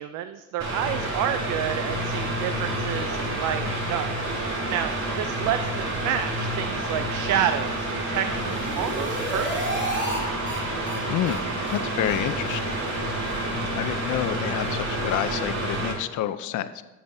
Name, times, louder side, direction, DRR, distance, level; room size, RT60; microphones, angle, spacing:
voice 1, 0.0-4.2 4.7-9.8, right 10 dB, 90° right, 10 dB, 0.5 m, -29 dB
Mechanical fan, 0.6-15.9, right 1 dB, 65° right, 2.7 m, -29 dB
sound 1, 8.3-10.2 10.5-10.6 10.9-11.0 11.3-11.4 11.7-11.8 12.1-12.2 12.5-12.6 12.9-13.0 13.3-13.4, right 1 dB, 40° right, 2.3 m, -32 dB
voice 2, 11.7-12.7 13.5-16.8, left 11 dB, 80° left, 13 dB, 0.6 m, -29 dB
13.0 x 7.4 x 2.7 m, 1.1 s
cardioid pair, 90°, 30 cm